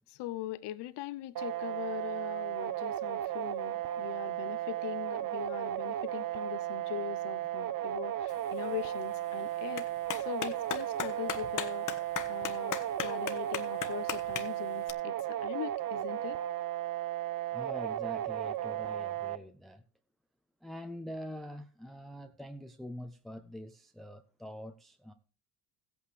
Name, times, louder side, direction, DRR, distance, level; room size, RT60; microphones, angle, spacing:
voice 1, 0.1-9.9 10.2-11.9 12.3-16.4, left 14 dB, 65° left, 0.9 m, -41 dB
sound 1, 1.4-19.4, right 12 dB, 50° right, 0.8 m, -35 dB
Clapping, 8.3-14.9, left 9 dB, 45° left, 1.3 m, -40 dB
voice 2, 17.5-19.8 20.6-25.1, equal, ahead, 0.7 m, -44 dB
15.5 x 8.6 x 3.3 m
supercardioid pair, 90°, 44 cm